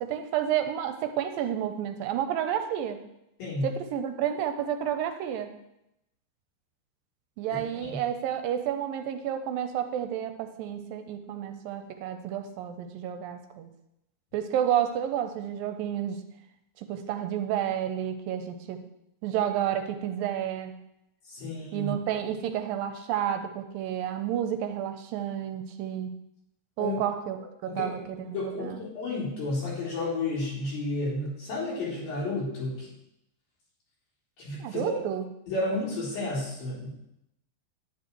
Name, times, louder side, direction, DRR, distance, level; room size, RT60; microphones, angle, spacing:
voice 1, 0.0-3.0 3.6-5.5 7.4-13.7 14.3-16.2 16.9-18.8 19.2-20.8 21.7-26.2 26.8-27.4 27.6-28.2 28.4-28.8 34.6-35.2, right 10 dB, 85° right, 8 dB, 2.4 m, -30 dB
voice 2, 21.3-21.9 26.8-27.0 27.7-27.9 28.3-32.9 34.4-34.9 35.5-36.9, left 2 dB, 75° left, -8 dB, 5.6 m, -31 dB
10.5 x 9.7 x 3.1 m, 0.83 s
omnidirectional pair, 4.1 m